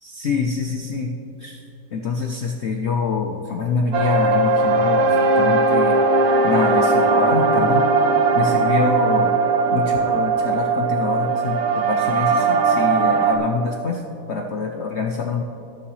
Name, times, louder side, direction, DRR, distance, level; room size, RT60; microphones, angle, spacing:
voice 1, 0.0-1.1 1.4-1.6 1.9-6.0 6.4-7.9 8.3-9.3 9.7-14.0 14.3-15.4, left 4 dB, 85° left, 2 dB, 0.6 m, -25 dB
sound 1, 3.9-13.4, right 3 dB, 60° right, 1.1 m, -18 dB
18.5 x 6.8 x 3.2 m, 2.9 s
omnidirectional pair, 2.0 m